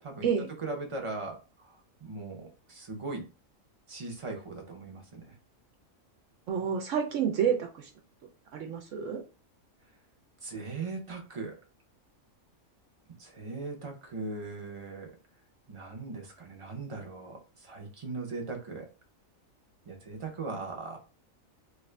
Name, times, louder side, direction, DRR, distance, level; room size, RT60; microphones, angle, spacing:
voice 1, 0.6-3.2 3.9-5.3 10.4-11.6 13.2-15.1 15.7-18.9 19.9-21.0, right 3 dB, 30° right, 2 dB, 0.7 m, -39 dB
voice 2, 6.5-7.9 8.5-9.2, right 7 dB, 70° right, 4 dB, 1.0 m, -29 dB
3.2 x 2.5 x 3.2 m, 0.31 s
omnidirectional pair, 1.4 m